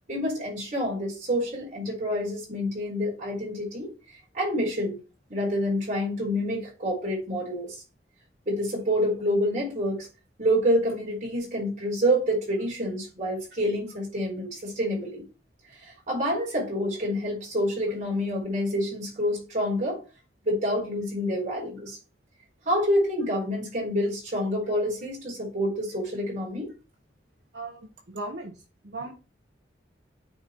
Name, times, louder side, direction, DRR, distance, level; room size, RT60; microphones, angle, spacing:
voice 1, 0.1-3.9 4.3-5.0 5.3-7.8 8.5-10.1 10.4-15.2 15.7-20.0 20.4-22.0 22.7-26.7, equal, 40° right, -2 dB, 4.1 m, -27 dB
voice 2, 27.5-29.1, right 2 dB, 70° right, 1 dB, 1.3 m, -38 dB
8.7 x 4.2 x 3.2 m, 0.31 s
head